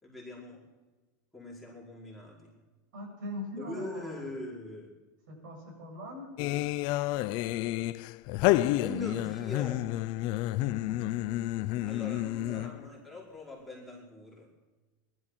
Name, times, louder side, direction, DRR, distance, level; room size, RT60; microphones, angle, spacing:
voice 1, 0.0-0.6 1.3-2.5 3.6-4.9 8.8-9.9 11.8-14.5, left 2 dB, ahead, -5 dB, 5.2 m, -42 dB
voice 2, 2.9-4.3 5.3-6.4 10.7-11.1 11.5-11.9 12.5-12.7, left 1 dB, 85° right, 0 dB, 7.7 m, -42 dB
sound 1, 6.4-12.9, left 16 dB, 50° left, 0.5 m, -30 dB
19.0 x 12.5 x 6.2 m, 1.2 s
supercardioid pair, 135°, 10 cm